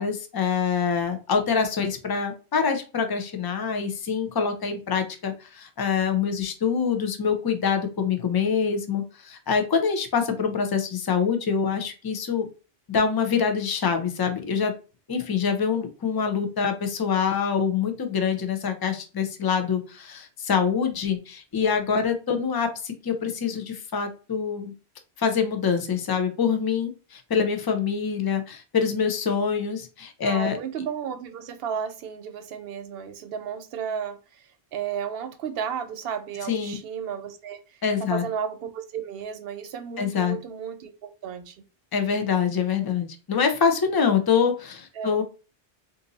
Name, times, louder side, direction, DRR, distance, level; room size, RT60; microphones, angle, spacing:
voice 1, 0.0-12.5 12.9-14.7 15.1-24.7 25.2-30.6 36.5-36.8 37.8-38.2 40.0-40.4 41.9-45.2, left 6 dB, 35° left, 0.3 m, -25 dB
voice 2, 30.2-34.4 34.7-41.6 45.0-45.2, right 7 dB, 65° right, 0.7 m, -33 dB
2.6 x 2.5 x 3.9 m
omnidirectional pair, 1.1 m